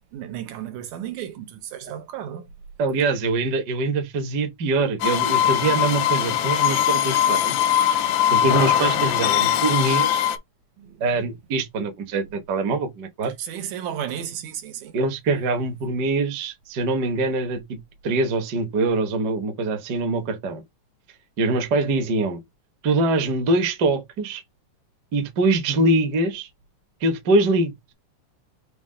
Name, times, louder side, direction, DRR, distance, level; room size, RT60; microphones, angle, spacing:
voice 1, 0.1-2.5 10.8-11.1 13.4-15.0, right 10 dB, 90° right, 2.3 m, -33 dB
voice 2, 2.8-7.6 8.3-10.2 11.0-13.3 14.9-17.8 18.0-20.6 21.4-22.4 22.8-24.4 25.1-26.5 27.0-27.7, right 2 dB, 60° right, 1.1 m, -23 dB
sound 1, 5.0-10.4, left 10 dB, 85° left, 2.0 m, -21 dB
6.0 x 2.3 x 3.7 m
omnidirectional pair, 3.3 m